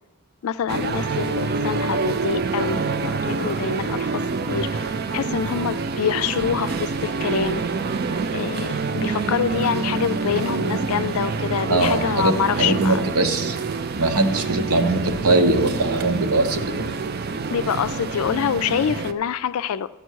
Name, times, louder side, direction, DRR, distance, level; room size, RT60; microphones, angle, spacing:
voice 1, 0.4-7.6 8.3-13.0 17.5-19.9, left 8 dB, 75° left, 14 dB, 0.3 m, -26 dB
sound 1, 0.7-19.1, right 4 dB, 45° right, 0.4 m, -26 dB
voice 2, 11.7-13.6 13.9-16.9, right 2 dB, 85° right, 6 dB, 1.0 m, -21 dB
13.5 x 8.7 x 4.6 m, 1.1 s
head